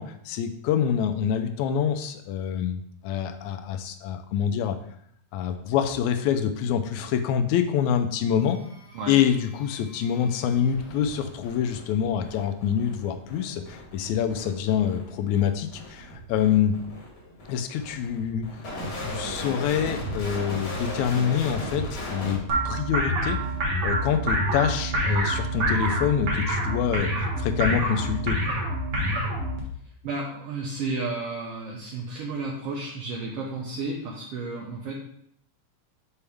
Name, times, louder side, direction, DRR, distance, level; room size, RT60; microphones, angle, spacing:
voice 1, 0.0-4.8 5.3-8.6 9.1-16.7 17.5-18.4 19.0-22.4 22.6-23.4 23.8-28.4, left 8 dB, 80° left, 7 dB, 1.8 m, -26 dB
sound 1, 8.4-22.4 23.4-23.6, equal, 50° left, 1.4 m, -38 dB
sound 2, 22.5-29.6, right 1 dB, 55° right, 1.8 m, -26 dB
voice 2, 30.0-34.9, right 3 dB, 75° right, -2 dB, 1.4 m, -32 dB
7.0 x 4.5 x 3.4 m, 0.69 s
omnidirectional pair, 3.6 m